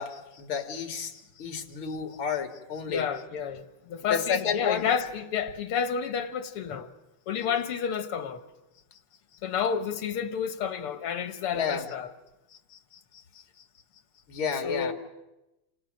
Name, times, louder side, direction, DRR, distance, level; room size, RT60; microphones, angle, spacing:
voice 1, 0.0-3.1 4.1-4.9 11.5-11.9 12.7-12.8 14.3-14.9, left 6 dB, 70° left, 2.8 m, -31 dB
voice 2, 2.9-6.9 7.3-8.4 9.4-12.1 14.6-14.9, left 7 dB, 85° left, 2.3 m, -30 dB
28.5 x 27.5 x 6.5 m
omnidirectional pair, 2.4 m